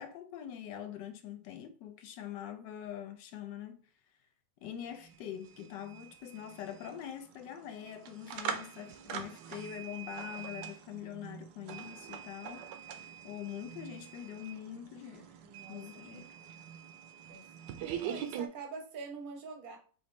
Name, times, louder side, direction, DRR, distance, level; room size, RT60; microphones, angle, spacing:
voice 1, 0.0-3.9 4.6-12.6 13.2-15.3 15.7-16.4, left 10 dB, 85° left, 1.3 m, -44 dB
sound 1, 4.6-4.7 5.0-18.5, right 8 dB, 85° right, 1.2 m, -44 dB
voice 2, 15.4-16.3 17.3-17.4 18.0-19.8, right 4 dB, 45° right, 0.7 m, -45 dB
4.9 x 2.6 x 3.2 m
omnidirectional pair, 1.9 m